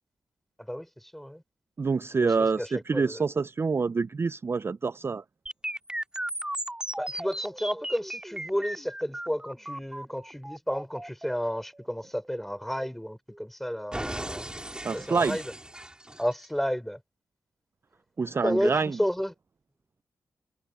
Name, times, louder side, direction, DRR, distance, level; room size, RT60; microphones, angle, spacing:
voice 1, 0.7-1.4 2.1-3.2 7.0-14.5 14.9-15.4 16.2-17.0 18.4-19.3, equal, 5° left, 4.0 m, -32 dB
voice 2, 1.8-5.2 14.8-15.4 18.2-19.0, right 4 dB, 35° right, 0.4 m, -27 dB
sound 1, 5.5-13.4 13.9-16.5, right 1 dB, 10° right, 3.1 m, -37 dB
cardioid pair, 55°, 7 cm